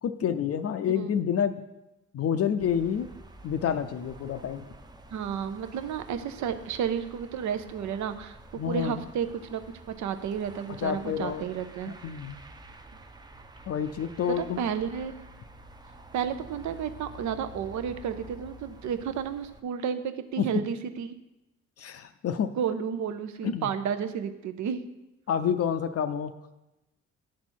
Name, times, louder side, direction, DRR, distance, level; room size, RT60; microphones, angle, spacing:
voice 1, 0.0-1.6 2.1-3.1 3.4-4.7 8.6-9.0 10.7-11.5 11.9-12.4 13.7-14.6 20.4-20.6 21.8-22.6 23.4-23.7 25.3-26.3, left 8 dB, 55° left, 9 dB, 0.5 m, -28 dB
sound 1, 2.6-19.6, right 1 dB, 15° right, 0.6 m, -49 dB
voice 2, 5.1-9.6 9.9-11.9 14.3-15.1 16.1-21.1 22.6-24.9, right 8 dB, 70° right, 10 dB, 0.7 m, -32 dB
9.0 x 4.2 x 6.2 m, 0.97 s
cardioid pair, 90°, 30 cm